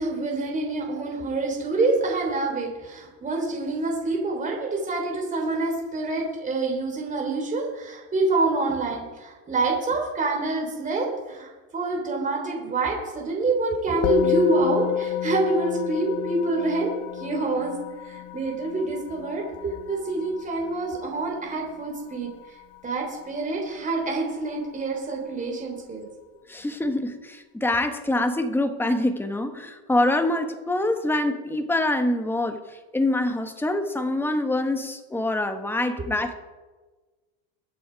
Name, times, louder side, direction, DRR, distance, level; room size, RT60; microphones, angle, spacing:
voice 1, 0.0-17.7 18.0-22.3 22.8-26.1 36.0-36.1, right 3 dB, 20° right, 0 dB, 3.3 m, -26 dB
Musical instrument, 14.0-23.6, left 13 dB, 50° left, 0.7 m, -31 dB
voice 2, 26.5-32.6 32.9-36.3, left 1 dB, 5° left, 7 dB, 1.3 m, -25 dB
22.0 x 7.9 x 5.1 m, 1.3 s
supercardioid pair, 120°, 38 cm